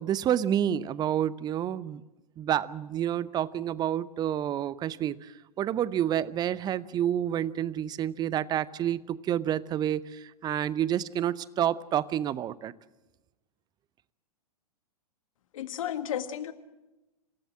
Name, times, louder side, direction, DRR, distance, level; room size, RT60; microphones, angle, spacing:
voice 1, 0.0-2.0 2.4-12.7, right 10 dB, 20° right, 19 dB, 0.7 m, -29 dB
voice 2, 15.5-16.5, left 10 dB, 60° left, 10 dB, 1.7 m, -33 dB
27.5 x 16.0 x 7.5 m, 1.0 s
figure-of-eight pair, 105°, 20 cm